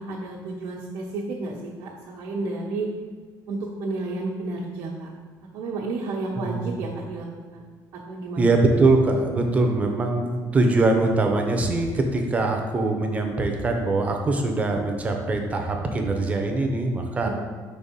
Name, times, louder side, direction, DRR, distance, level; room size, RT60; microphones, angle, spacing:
voice 1, 0.0-2.9 3.5-5.1 5.5-7.3 7.5-7.7 7.9-8.4 17.2-17.3, right 3 dB, 85° right, -7 dB, 1.1 m, -31 dB
voice 2, 6.4-6.8 8.4-17.3, right 2 dB, 20° right, 3 dB, 0.6 m, -22 dB
5.4 x 4.2 x 5.2 m, 1.5 s
cardioid pair, 180°, 7 cm